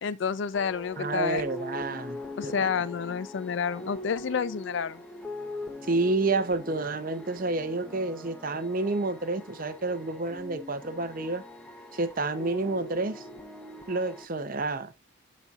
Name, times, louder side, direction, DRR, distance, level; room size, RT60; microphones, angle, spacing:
voice 1, 0.0-1.4 2.4-5.0, left 6 dB, 60° left, 0.4 m, -29 dB
sound 1, 0.5-14.3, left 1 dB, 5° left, 0.7 m, -42 dB
voice 2, 1.0-2.7 5.8-11.4 11.9-13.3 13.9-14.9, right 3 dB, 40° right, 0.6 m, -29 dB
11.5 x 4.1 x 2.4 m
head